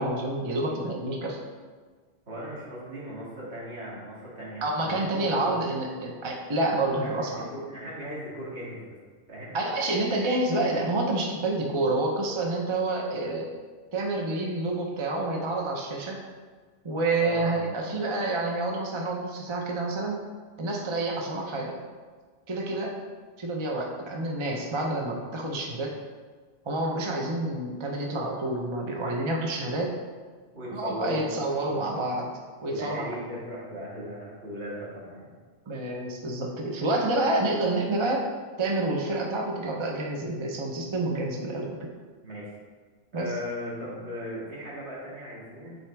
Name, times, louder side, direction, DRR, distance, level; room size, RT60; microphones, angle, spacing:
voice 1, 0.0-1.4 4.6-7.5 9.5-13.5 13.9-16.2 16.8-20.2 20.6-21.7 22.5-23.0 23.4-25.9 26.7-29.9 30.7-32.3 32.6-33.1 35.7-38.3 38.6-41.9 43.1-43.3, right 2 dB, 30° right, 0 dB, 0.6 m, -28 dB
voice 2, 2.3-5.6 6.9-9.0 9.3-9.6 17.2-17.7 30.5-32.0 32.6-35.3 42.2-42.5 43.1-45.8, equal, 60° right, -6 dB, 2.2 m, -37 dB
9.0 x 4.3 x 3.4 m, 1.5 s
omnidirectional pair, 1.2 m